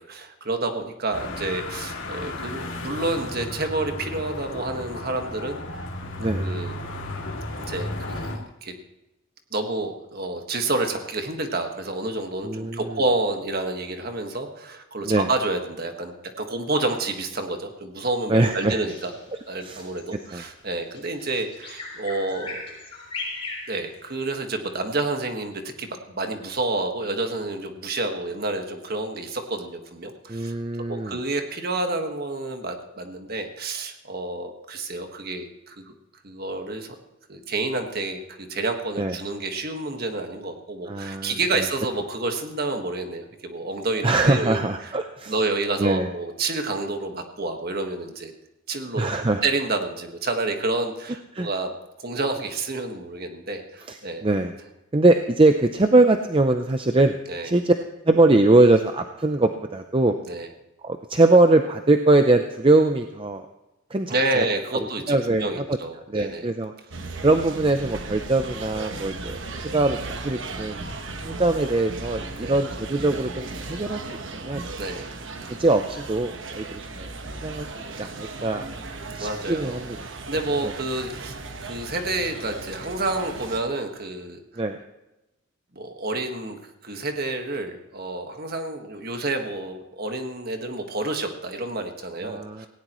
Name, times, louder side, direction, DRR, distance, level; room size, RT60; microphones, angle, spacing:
voice 1, 0.0-5.9 6.3-6.7 7.6-8.7 9.5-19.1 19.5-22.7 23.7-30.5 30.9-35.9 36.2-36.9 37.3-44.9 45.3-48.3 48.7-49.1 49.4-51.7 52.0-54.2 57.3-57.5 60.3-60.5 64.1-66.5 72.4-72.6 74.8-75.1 79.2-79.8 80.3-84.4 85.7-92.7, right 2 dB, 45° right, 5 dB, 1.6 m, -29 dB
sound 1, 1.1-8.4, left 1 dB, 60° left, 2.6 m, -34 dB
voice 2, 12.4-13.0 15.0-15.3 18.3-18.8 19.6-19.8 20.3-20.4 30.3-31.2 39.0-39.1 40.9-41.6 44.0-45.3 45.8-46.1 48.9-49.4 51.3-51.5 53.9-54.5 54.9-57.2 57.4-57.7 58.1-60.2 60.8-63.4 63.9-64.4 64.7-65.8 66.1-66.7 67.2-70.9 71.2-74.0 74.4-74.6 75.5-76.6 76.9-77.7 78.0-78.6 79.2-80.0 80.6-80.7 84.6-84.8 92.2-92.7, right 2 dB, 25° right, 6 dB, 0.6 m, -22 dB
Bird vocalization bird call bird song, 18.9-24.4, left 3 dB, 30° left, 6.4 m, -38 dB
sound 2, 66.9-83.6, right 3 dB, 60° right, 1.2 m, -36 dB
18.0 x 17.0 x 3.1 m, 0.96 s
head